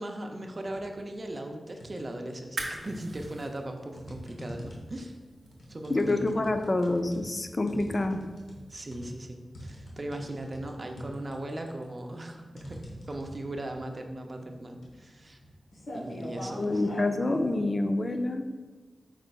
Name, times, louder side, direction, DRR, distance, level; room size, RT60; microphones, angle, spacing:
voice 1, 0.0-5.2 5.7-6.3 8.7-15.4 15.9-16.8, right 1 dB, 35° right, 4 dB, 0.5 m, -38 dB
sound 1, 0.6-1.0 1.4-2.3 2.9-17.5, equal, 90° left, 0.9 m, -43 dB
sound 2, 2.5-9.1, right 2 dB, 80° right, 0.7 m, -45 dB
voice 2, 5.9-8.2 16.6-18.4, left 2 dB, 35° left, 7 dB, 0.4 m, -27 dB
5.1 x 4.4 x 2.3 m, 1.3 s
wide cardioid pair, 95°, 0 cm